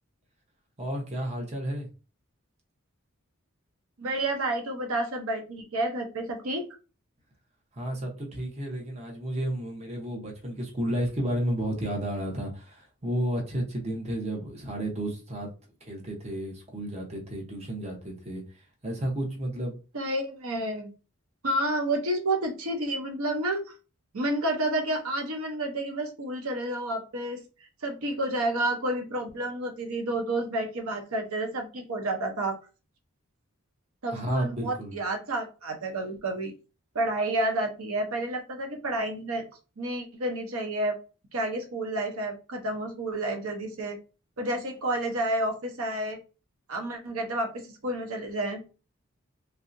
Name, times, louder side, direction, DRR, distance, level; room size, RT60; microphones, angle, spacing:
voice 1, 0.8-1.9 7.7-15.5 15.8-18.4 18.8-19.8 34.1-35.0, right 1 dB, 30° right, 0 dB, 0.8 m, -32 dB
voice 2, 4.0-6.7 19.9-20.9 21.4-23.6 24.1-27.4 27.8-32.5 34.0-36.5 36.9-39.4 39.8-40.9 41.3-44.0 44.4-46.2 46.7-48.6, right 1 dB, 85° right, 3 dB, 0.7 m, -30 dB
3.2 x 2.7 x 2.6 m, 0.33 s
head